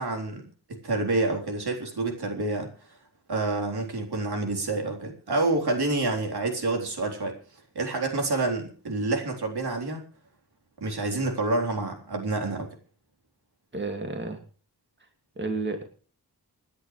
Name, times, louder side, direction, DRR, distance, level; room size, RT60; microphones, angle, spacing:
voice 1, 0.0-2.7 3.3-7.4 7.8-10.0 10.8-12.7, right 2 dB, 75° right, 2 dB, 3.9 m, -28 dB
voice 2, 13.7-14.4 15.4-15.8, right 3 dB, 30° right, 5 dB, 2.3 m, -31 dB
27.5 x 10.0 x 3.2 m, 0.39 s
wide cardioid pair, 90°, 39 cm